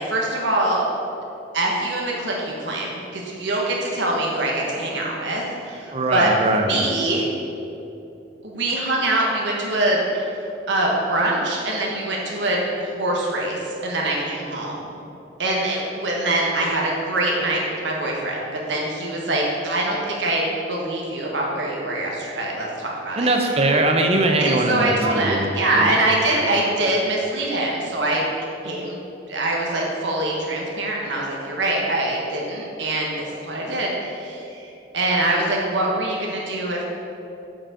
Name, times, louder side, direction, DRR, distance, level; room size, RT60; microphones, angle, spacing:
voice 1, 0.1-0.8 1.5-6.3 6.7-7.2 8.4-10.3 10.7-14.8 15.4-18.4 18.7-23.6 24.4-28.2 28.6-29.0 29.3-36.8, right 1 dB, 80° right, -2 dB, 1.2 m, -24 dB
voice 2, 5.9-6.6 23.2-25.5 25.8-25.9, right 2 dB, 35° right, 3 dB, 0.7 m, -20 dB
7.5 x 4.9 x 5.0 m, 2.8 s
head